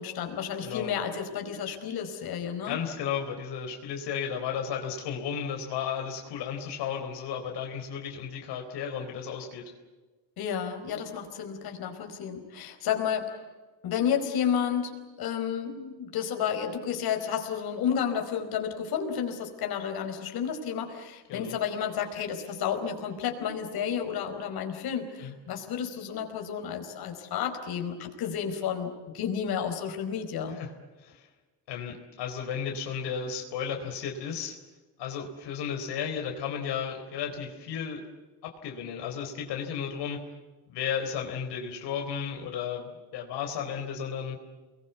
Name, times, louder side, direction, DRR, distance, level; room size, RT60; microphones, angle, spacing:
voice 1, 0.0-2.8 10.4-13.4 13.8-30.6, left 8 dB, 65° left, 5 dB, 4.7 m, -31 dB
voice 2, 0.6-0.9 2.6-9.6 21.3-21.6 25.2-25.3 30.6-30.7 31.0-31.3 31.7-34.6 35.0-38.0 38.4-40.2 40.7-42.9 43.1-44.4, left 7 dB, 85° left, 3 dB, 4.1 m, -34 dB
30.0 x 21.5 x 8.2 m, 1.2 s
cardioid pair, 155°, 40 cm